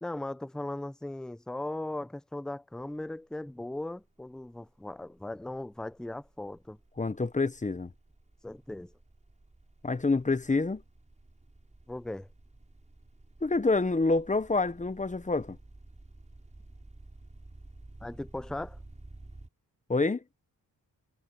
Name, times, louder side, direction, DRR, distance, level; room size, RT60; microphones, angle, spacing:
voice 1, 0.0-6.8 8.4-8.9 11.9-12.3 18.0-18.8, left 1 dB, ahead, 0.6 m, -38 dB
sound 1, 2.7-3.1 3.3-19.5, right 2 dB, 20° right, 5.3 m, -53 dB
voice 2, 7.0-7.9 9.8-10.8 13.4-15.6 19.9-20.2, left 3 dB, 20° left, 1.0 m, -27 dB
cardioid pair, 85°, 37 cm